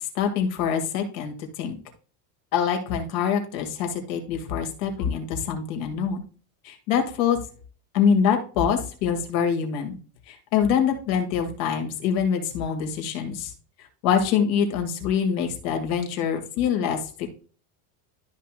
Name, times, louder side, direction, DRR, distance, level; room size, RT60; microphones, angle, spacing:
voice 1, 0.1-1.8 2.5-6.2 6.6-7.4 7.9-10.0 10.3-13.5 14.0-17.0, left 7 dB, 65° left, 4 dB, 2.5 m, -25 dB
13.0 x 5.6 x 2.5 m, 0.38 s
cardioid pair, 150°, 46 cm